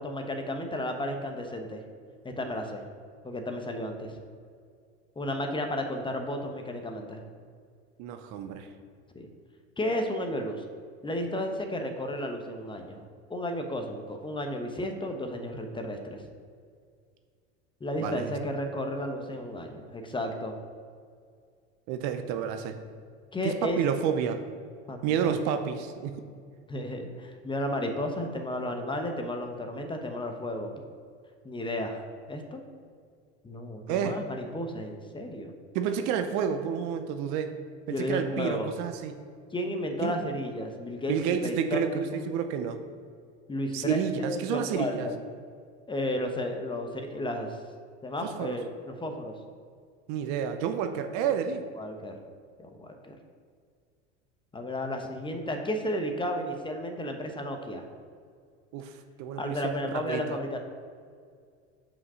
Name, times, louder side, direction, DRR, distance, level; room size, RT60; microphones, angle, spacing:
voice 1, 0.0-1.8 2.2-2.8 3.2-4.1 5.2-7.2 9.1-9.3 9.8-10.6 11.0-13.0 13.3-16.2 17.8-20.6 23.3-23.8 24.9-25.3 26.7-30.7 31.4-32.6 33.4-35.5 37.9-38.7 39.5-42.3 43.5-45.2 45.9-47.6 48.0-49.3 51.8-52.2 52.6-53.2 54.5-57.8 59.4-60.6, left 1 dB, 15° left, 4 dB, 0.9 m, -33 dB
voice 2, 8.0-8.7 18.0-18.3 21.9-22.8 23.4-24.4 25.0-26.2 33.9-34.2 35.7-37.6 37.9-39.1 40.0-40.2 41.1-42.8 43.7-45.1 48.2-48.6 50.1-51.6 58.7-58.9 59.2-60.4, right 8 dB, 55° right, 8 dB, 0.7 m, -30 dB
6.0 x 5.0 x 5.5 m, 2.1 s
hypercardioid pair, 85°, 34 cm